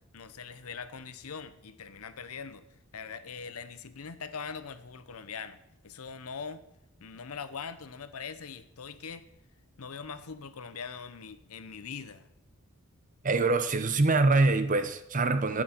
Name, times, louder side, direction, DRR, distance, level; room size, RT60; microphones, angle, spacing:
voice 1, 0.1-2.6 2.9-5.6 5.8-6.6 7.0-9.3 9.8-12.3, left 5 dB, 80° left, 0.8 m, -42 dB
voice 2, 13.2-15.6, right 3 dB, 35° right, 0.7 m, -24 dB
11.0 x 9.1 x 4.4 m
head